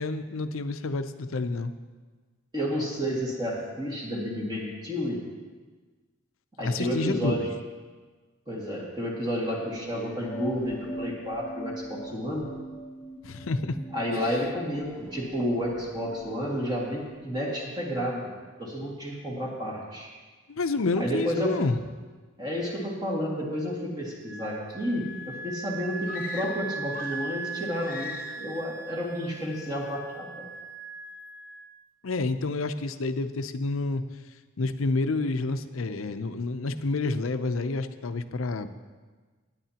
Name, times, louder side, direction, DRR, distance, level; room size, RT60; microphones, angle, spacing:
voice 1, 0.0-1.7 6.6-7.5 13.2-13.8 20.5-21.8 32.0-34.0 34.6-38.7, left 3 dB, 80° left, 10 dB, 0.6 m, -29 dB
voice 2, 2.5-5.2 6.6-7.5 8.5-12.5 13.9-18.3 18.6-20.1 21.0-21.6 22.4-30.5, equal, 20° right, -3 dB, 1.9 m, -31 dB
sound 1, 9.5-17.2, right 1 dB, 10° left, 0.9 m, -41 dB
Wind instrument woodwind instrument, 24.3-31.7, right 3 dB, 60° right, 0.8 m, -39 dB
sound 2, 26.0-27.4 27.8-28.6, left 7 dB, 40° left, 0.8 m, -41 dB
18.0 x 9.7 x 2.9 m, 1.4 s
head